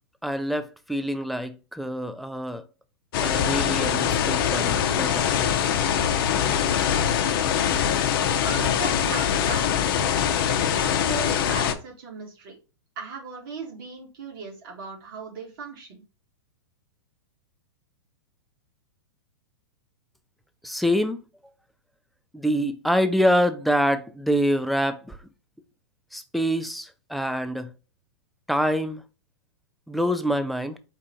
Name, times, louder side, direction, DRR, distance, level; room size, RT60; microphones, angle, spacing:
voice 1, 0.2-2.6 3.2-5.3 20.6-21.2 22.3-25.2 26.1-27.7 28.5-29.0 29.9-30.8, equal, ahead, 0.4 m, -25 dB
sound 1, 3.1-11.7, left 9 dB, 55° left, 0.6 m, -23 dB
voice 2, 8.4-10.2 10.6-12.6 13.0-16.0, right 5 dB, 60° right, 2.0 m, -37 dB
4.6 x 2.4 x 4.3 m
hypercardioid pair, 120°, 14 cm